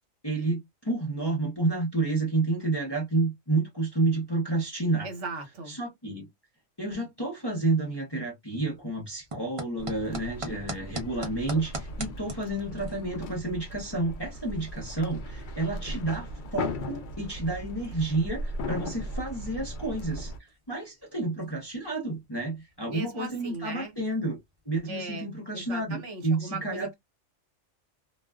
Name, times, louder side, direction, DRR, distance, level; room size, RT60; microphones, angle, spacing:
voice 1, 0.2-0.6 0.8-5.1 5.7-6.3 6.8-24.4 24.6-26.9, right 2 dB, 25° left, 0.7 m, -30 dB
voice 2, 5.0-5.8 22.9-23.9 24.9-26.9, right 3 dB, 70° right, 1.2 m, -38 dB
sound 1, 8.6-24.9, right 2 dB, 30° right, 0.6 m, -46 dB
sound 2, 9.8-20.4, left 1 dB, 70° left, 0.4 m, -38 dB
2.4 x 2.3 x 2.2 m
omnidirectional pair, 1.4 m